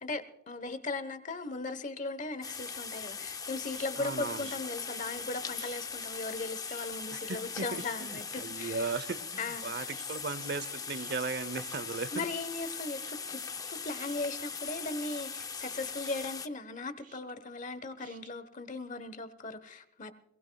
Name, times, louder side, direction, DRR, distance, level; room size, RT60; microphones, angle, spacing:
voice 1, 0.0-8.9 9.4-9.9 12.1-13.4 13.7-20.1, left 3 dB, 40° left, 1.1 m, -38 dB
sound 1, 2.4-16.5, left 5 dB, 20° left, 0.5 m, -40 dB
sound 2, 3.7-4.1 4.4-5.3 5.5-7.5 7.7-8.6 8.8-9.6 9.9-18.3, right 8 dB, 40° right, 1.3 m, -54 dB
voice 2, 4.0-4.5 7.3-12.3, right 4 dB, 55° right, 0.7 m, -37 dB
22.0 x 19.5 x 2.3 m
head